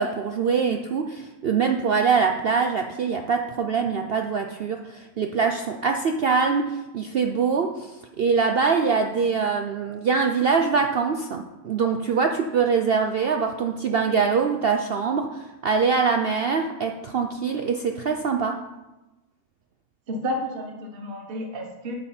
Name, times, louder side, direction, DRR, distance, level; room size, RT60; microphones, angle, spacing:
voice 1, 0.0-18.6, right 5 dB, 65° right, 4 dB, 0.5 m, -23 dB
voice 2, 20.1-21.9, equal, 40° right, 3 dB, 1.2 m, -31 dB
8.5 x 7.2 x 4.3 m, 1.1 s
omnidirectional pair, 1.6 m